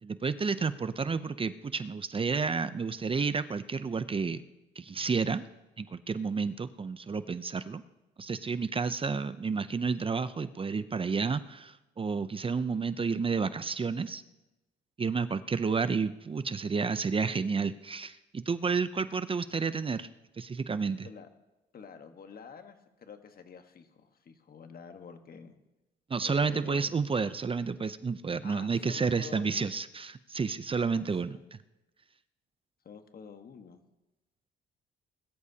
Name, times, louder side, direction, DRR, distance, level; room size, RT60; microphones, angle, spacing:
voice 1, 0.0-4.4 4.8-5.4 5.8-7.8 8.2-14.2 15.0-20.1 20.4-21.1 26.1-31.6, right 5 dB, 25° right, 13 dB, 0.6 m, -31 dB
voice 2, 21.7-25.5 26.2-26.9 28.4-29.7 30.7-31.4 32.8-33.8, left 6 dB, 50° left, 7 dB, 1.4 m, -48 dB
21.0 x 13.5 x 2.8 m, 0.99 s
cardioid pair, 90°, 20 cm